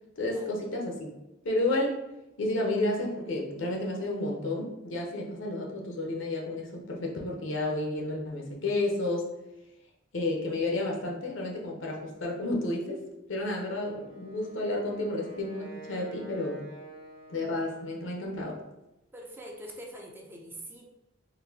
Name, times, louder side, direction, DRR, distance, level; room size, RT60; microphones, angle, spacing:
voice 1, 0.2-1.1 1.4-2.0 2.4-9.3 10.1-13.0 13.3-16.7 17.3-18.6, left 2 dB, 70° left, 0 dB, 0.7 m, -31 dB
Wind instrument woodwind instrument, 13.8-18.1, right 1 dB, 90° left, 1.2 m, -48 dB
voice 2, 19.1-20.9, right 1 dB, 10° right, 0 dB, 0.4 m, -44 dB
4.0 x 2.5 x 2.7 m, 0.93 s
head